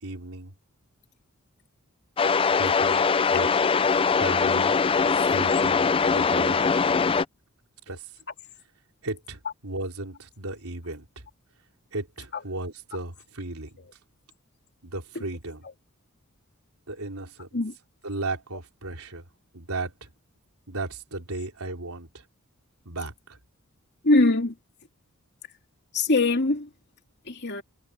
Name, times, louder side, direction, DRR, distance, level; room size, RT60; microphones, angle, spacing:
voice 1, 0.0-0.5 2.5-3.0 3.3-3.5 4.2-4.8 5.1-6.6 7.9-8.1 9.0-11.2 11.9-13.9 14.8-15.6 16.9-17.5 18.0-19.3 19.5-20.1 20.7-22.3 22.9-23.4, right 2 dB, 90° right, 3.5 m, -35 dB
sound 1, 2.2-7.2, left 5 dB, 25° left, 0.4 m, -22 dB
voice 2, 24.0-24.6 25.9-26.7 27.3-27.6, left 2 dB, 55° left, 2.7 m, -22 dB
head